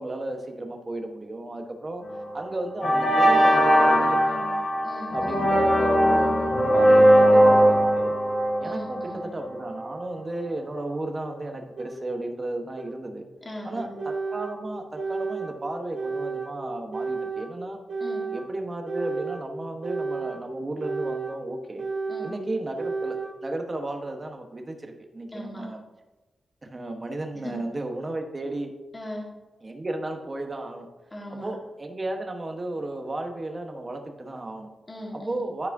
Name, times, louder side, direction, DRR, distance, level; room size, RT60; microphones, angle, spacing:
voice 1, 0.0-2.0 2.3-4.7 5.1-8.1 8.6-13.2 13.6-17.8 18.3-21.8 22.2-23.2 23.4-25.8 26.7-28.7 29.6-30.9 31.4-34.7 35.3-35.7, right 2 dB, 35° right, 4 dB, 1.1 m, -34 dB
sound 1, 2.1-2.3 2.8-9.6, equal, 70° left, 2.3 m, -19 dB
voice 2, 4.8-5.4 8.6-9.2 13.4-13.9 18.0-18.3 22.1-22.3 25.3-25.6 27.4-27.5 28.9-29.3 31.1-31.5 34.9-35.4, left 1 dB, 30° left, -2 dB, 1.6 m, -39 dB
sound 2, 11.8-11.9 12.8-12.9 13.8-14.5 15.0-15.5 15.9-16.5 16.9-17.5 17.9-18.4 18.9-19.4 19.8-20.4 20.8-21.3 21.8-22.3 22.8-23.3, right 4 dB, 65° right, 1.6 m, -31 dB
11.5 x 4.9 x 2.7 m, 1.1 s
cardioid pair, 75°, 0 cm